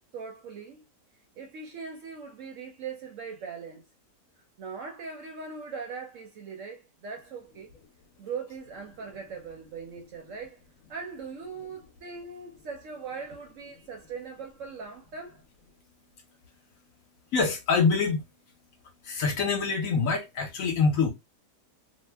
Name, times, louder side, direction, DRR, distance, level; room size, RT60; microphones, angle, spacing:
voice 1, 0.1-0.9 1.4-3.8 4.6-7.7 8.2-10.6 10.9-15.4, right 5 dB, 65° right, 0.8 m, -40 dB
voice 2, 17.3-18.3 19.0-21.1, left 4 dB, 60° left, 1.0 m, -25 dB
2.7 x 2.1 x 3.2 m
omnidirectional pair, 1.7 m